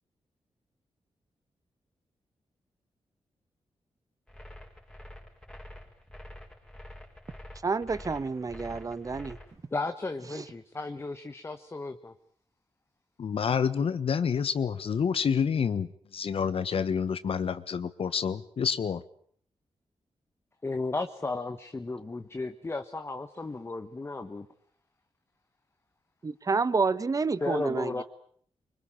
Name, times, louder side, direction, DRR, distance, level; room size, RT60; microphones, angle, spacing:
sound 1, 4.3-9.5, left 1 dB, 5° left, 5.0 m, -46 dB
voice 1, 7.6-9.4 10.3-10.4 26.2-28.0, right 4 dB, 35° right, 16 dB, 1.1 m, -29 dB
voice 2, 9.7-12.1 20.6-24.5 27.4-28.0, left 3 dB, 25° left, 8 dB, 1.3 m, -34 dB
voice 3, 13.2-19.0, left 7 dB, 65° left, 13 dB, 1.4 m, -28 dB
25.0 x 24.5 x 9.0 m, 0.63 s
wide cardioid pair, 135°, 10 cm